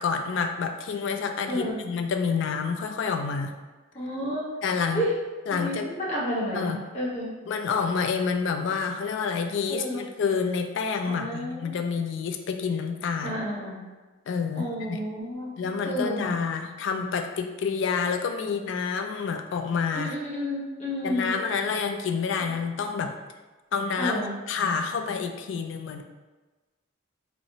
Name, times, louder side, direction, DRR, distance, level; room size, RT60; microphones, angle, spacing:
voice 1, 0.0-3.5 4.6-5.0 5.5-5.9 6.5-6.8 7.5-13.4 14.3-15.0 15.6-20.1 21.0-23.1 23.7-24.2 24.5-26.0, left 5 dB, 60° left, 5 dB, 0.3 m, -28 dB
voice 2, 3.9-4.4 4.9-5.1 5.5-7.3 9.7-10.0 11.0-11.7 13.2-13.8 14.5-15.5 15.8-16.3 19.9-21.4 24.0-24.3, equal, 30° left, -8 dB, 1.1 m, -30 dB
3.0 x 2.9 x 2.7 m, 1.2 s
head